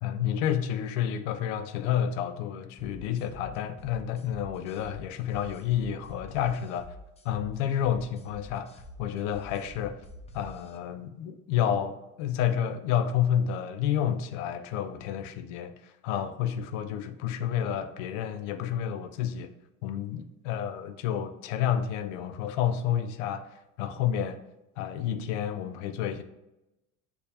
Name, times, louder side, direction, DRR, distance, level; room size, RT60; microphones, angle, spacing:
voice 1, 0.0-6.9 7.2-8.7 9.0-10.0 10.3-19.5 19.8-24.4 24.8-26.2, left 9 dB, 85° left, 0.5 m, -30 dB
sound 1, 2.8-10.8, left 1 dB, 20° left, 0.5 m, -47 dB
6.7 x 2.4 x 2.7 m
supercardioid pair, 105°, 36 cm